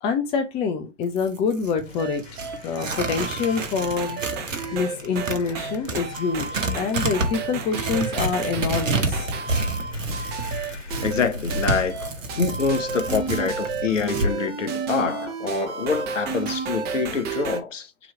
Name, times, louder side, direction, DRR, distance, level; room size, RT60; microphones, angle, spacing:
voice 1, 0.0-2.2 2.6-4.2 4.7-9.3, left 5 dB, 15° left, 0.4 m, -26 dB
Tearing, 1.0-4.7 5.0-14.3, right 2 dB, 85° right, 1.1 m, -29 dB
sound 1, 1.8-13.6, left 4 dB, 65° left, 2.1 m, -43 dB
sound 2, 2.0-17.6, right 5 dB, 25° right, 1.0 m, -32 dB
voice 2, 11.0-12.1 12.4-17.9, left 5 dB, 80° left, 0.8 m, -26 dB
4.0 x 3.0 x 4.3 m
figure-of-eight pair, 105°, 37 cm